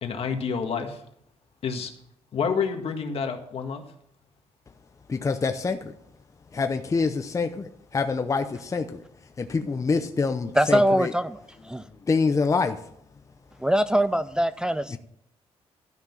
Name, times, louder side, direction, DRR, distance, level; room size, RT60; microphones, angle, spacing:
voice 1, 0.0-1.0 1.6-1.9 2.3-3.8 10.7-10.8, left 6 dB, 60° left, 5 dB, 1.7 m, -28 dB
voice 2, 5.1-5.9 6.5-9.0 9.4-11.1 12.1-12.8 14.9-15.0, left 4 dB, 30° left, 7 dB, 0.7 m, -26 dB
voice 3, 10.5-11.4 11.6-11.8 13.6-15.0, equal, 5° right, 12 dB, 0.4 m, -22 dB
13.0 x 5.9 x 7.2 m, 0.73 s
cardioid pair, 110°, 11 cm